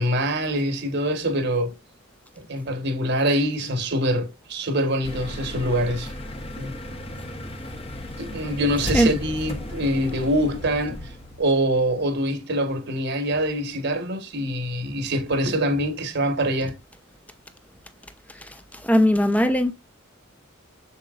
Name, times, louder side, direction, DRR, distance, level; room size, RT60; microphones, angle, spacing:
voice 1, 0.0-1.8 2.4-6.1 6.6-6.8 8.2-11.0 11.4-16.7, equal, 60° right, 1.5 m, -24 dB
sound 1, 5.0-11.5, left 1 dB, 30° left, 1.1 m, -34 dB
voice 2, 18.8-19.7, equal, 5° left, 0.8 m, -18 dB
7.3 x 7.2 x 2.5 m
head